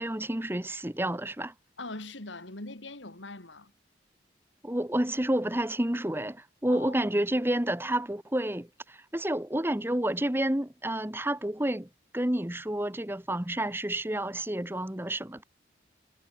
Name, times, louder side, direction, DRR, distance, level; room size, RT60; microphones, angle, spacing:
voice 1, 0.0-1.5 4.6-11.9 12.1-15.4, right 1 dB, 10° right, 1.2 m, -30 dB
voice 2, 1.8-3.7 6.7-7.0, left 2 dB, 85° left, 4.1 m, -41 dB
head